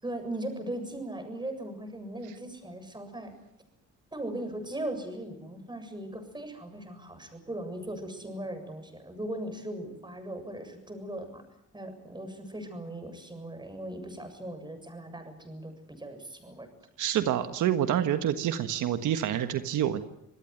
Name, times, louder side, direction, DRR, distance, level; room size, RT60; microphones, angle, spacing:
voice 1, 0.0-3.3 4.1-11.4 11.7-16.7, right 1 dB, 15° right, 7 dB, 7.3 m, -38 dB
voice 2, 17.0-20.0, right 10 dB, 80° right, 9 dB, 1.5 m, -27 dB
27.0 x 18.0 x 9.5 m, 0.80 s
cardioid pair, 90°, 30 cm